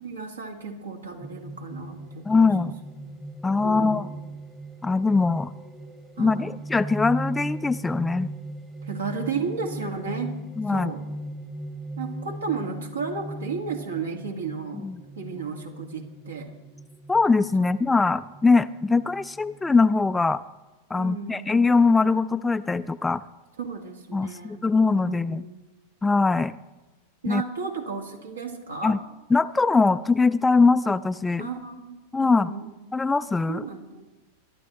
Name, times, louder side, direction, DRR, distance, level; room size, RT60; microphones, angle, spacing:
voice 1, 0.0-2.7 3.0-3.1 3.6-4.2 6.2-6.6 8.8-10.3 10.7-11.0 12.0-14.9 15.2-16.5 17.6-17.7 20.9-21.5 23.6-24.6 25.0-25.6 27.2-29.0 31.4-32.7 33.5-34.0, right 5 dB, 70° right, 4 dB, 2.0 m, -34 dB
sound 1, 1.2-20.4, right 2 dB, 10° right, 1.1 m, -39 dB
voice 2, 2.3-2.8 3.4-4.1 4.8-5.5 6.2-8.3 10.6-10.9 14.8-15.0 17.1-20.4 20.9-23.2 24.1-25.4 26.0-26.5 27.3-27.4 28.8-29.0 29.3-31.5 32.1-32.5 32.9-33.7, left 4 dB, 10° left, 14 dB, 0.3 m, -22 dB
22.5 x 12.0 x 3.1 m, 1.1 s
figure-of-eight pair, 90°, 0 cm